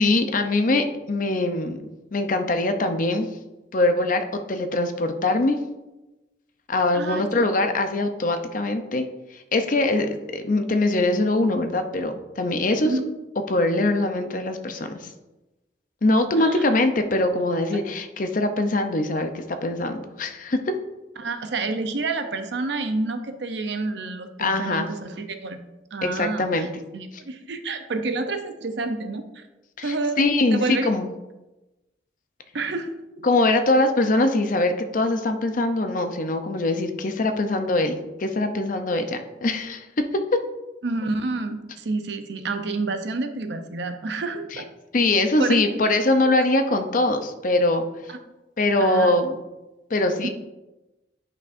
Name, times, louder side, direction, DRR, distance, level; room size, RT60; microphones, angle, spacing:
voice 1, 0.0-3.3 3.7-5.6 6.7-9.0 9.3-12.9 13.5-15.1 16.0-20.7 24.4-24.9 26.0-26.7 29.8-31.1 33.2-40.4 44.5-44.6 44.9-48.2 48.6-49.4 49.9-50.3, left 2 dB, 45° left, 7 dB, 0.6 m, -23 dB
voice 2, 6.9-7.3 9.7-10.1 12.8-13.0 16.4-16.7 21.2-25.6 25.9-26.7 26.9-29.4 29.8-30.2 30.5-30.9 32.5-32.9 33.2-33.3 40.8-44.7 45.4-45.6 48.1-48.2 48.8-49.2 50.2-50.3, right 3 dB, 65° right, 7 dB, 0.6 m, -29 dB
9.2 x 5.5 x 2.6 m, 1.0 s
head